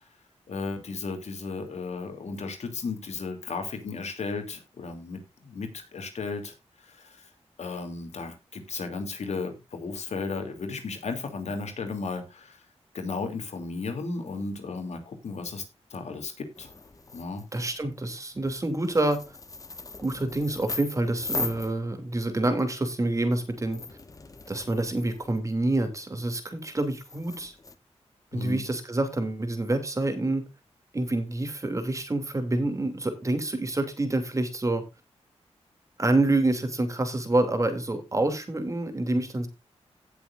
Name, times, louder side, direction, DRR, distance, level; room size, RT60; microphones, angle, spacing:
voice 1, 0.5-6.5 6.8-7.3 7.6-12.6 12.9-15.6 15.9-16.7 17.1-17.5 28.3-28.6, left 4 dB, 80° left, 6 dB, 3.0 m, -34 dB
sound 1, 16.6-17.8 18.5-22.3 22.9-25.5 26.7-27.8, left 3 dB, 30° left, 1.1 m, -39 dB
voice 2, 17.5-19.2 20.0-23.8 24.5-27.5 28.3-30.4 30.9-34.8 36.0-39.5, right 2 dB, 30° right, 7 dB, 2.9 m, -27 dB
17.5 x 7.0 x 2.6 m, 0.25 s
wide cardioid pair, 110°, 11 cm